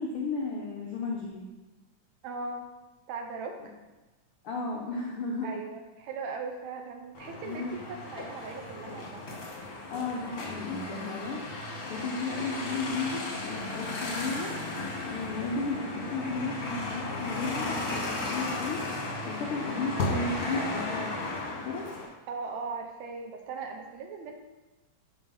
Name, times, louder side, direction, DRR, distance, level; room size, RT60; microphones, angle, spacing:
voice 1, 0.0-1.4 4.4-5.5 7.4-7.7 9.9-11.4 11.9-14.5 15.0-18.8 19.2-21.1 21.6-21.9, left 3 dB, 90° left, -1 dB, 1.2 m, -34 dB
voice 2, 2.2-2.7 3.1-3.6 5.4-9.2 22.3-24.3, right 4 dB, 75° right, 3 dB, 1.8 m, -38 dB
sound 1, 7.1-22.1, left 2 dB, 55° left, 1.0 m, -35 dB
6.6 x 4.1 x 5.5 m, 1.1 s
omnidirectional pair, 3.5 m